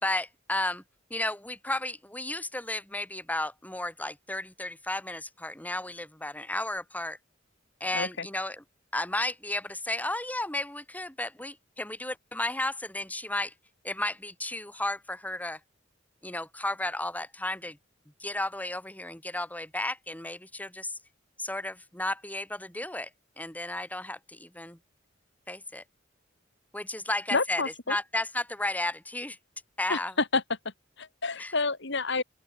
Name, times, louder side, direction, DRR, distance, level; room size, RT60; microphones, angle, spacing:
voice 1, 0.0-0.8 1.1-7.2 7.8-8.6 8.9-13.5 13.8-15.6 16.2-17.8 18.2-21.0 21.4-23.1 23.4-24.8 25.5-25.8 26.7-27.6 27.9-29.4 29.8-30.1 31.4-31.6, left 1 dB, 10° left, 5.1 m, -33 dB
voice 2, 7.9-8.3 27.3-28.0 29.9-30.4 31.0-32.2, left 3 dB, 65° left, 4.0 m, -29 dB
open air
head